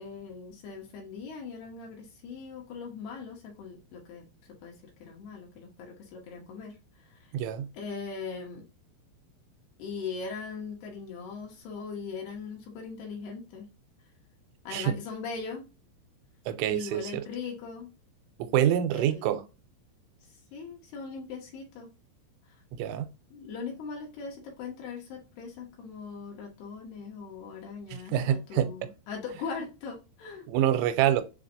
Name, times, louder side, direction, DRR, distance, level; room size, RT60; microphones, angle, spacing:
voice 1, 0.0-4.2 4.6-4.7 5.0-7.3 7.7-8.7 9.8-13.7 14.6-15.7 16.7-17.9 18.9-19.2 20.5-21.9 23.3-30.5, left 5 dB, 70° left, 3.0 m, -40 dB
voice 2, 7.3-7.7 14.7-15.0 16.5-17.2 18.4-19.4 22.7-23.1 27.9-28.9 30.5-31.2, right 11 dB, 85° right, 3.0 m, -26 dB
7.1 x 2.4 x 2.6 m
omnidirectional pair, 5.3 m